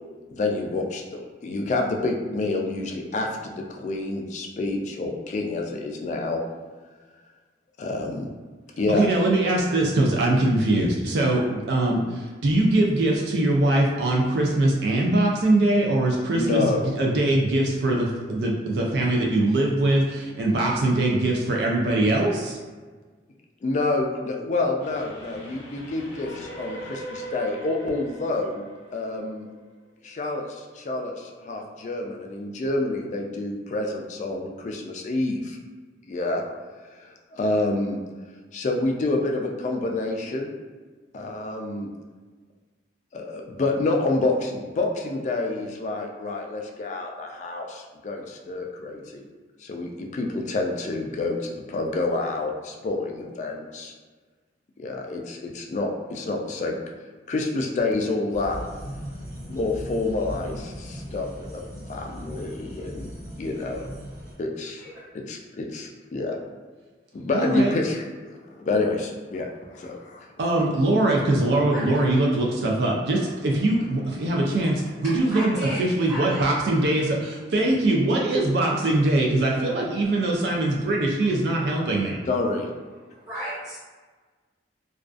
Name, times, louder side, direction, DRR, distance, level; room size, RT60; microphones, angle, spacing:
voice 1, 0.3-6.4 7.8-8.3 8.8-9.1 16.4-16.9 23.6-28.7 28.9-29.5 30.0-35.6 36.0-36.4 36.9-38.0 38.5-40.5 41.1-41.9 43.1-49.2 49.6-53.9 54.8-56.8 57.3-58.6 59.5-61.6 61.9-63.1 63.4-63.8 64.4-64.8 65.1-66.4 67.1-68.0 68.6-70.3 82.3-82.7, left 2 dB, 45° left, 2 dB, 0.3 m, -28 dB
voice 2, 8.9-22.6 67.3-67.7 70.4-82.2, right 2 dB, 70° right, -1 dB, 0.4 m, -22 dB
Train, 24.8-30.1, right 2 dB, 80° left, 0.7 m, -41 dB
sound 1, 58.3-64.3, equal, 45° right, 1.2 m, -38 dB
voice 3, 71.7-72.1 75.3-76.5 76.8-76.9 83.3-83.8, equal, 20° right, -12 dB, 0.8 m, -34 dB
2.4 x 2.3 x 2.3 m, 1.4 s
head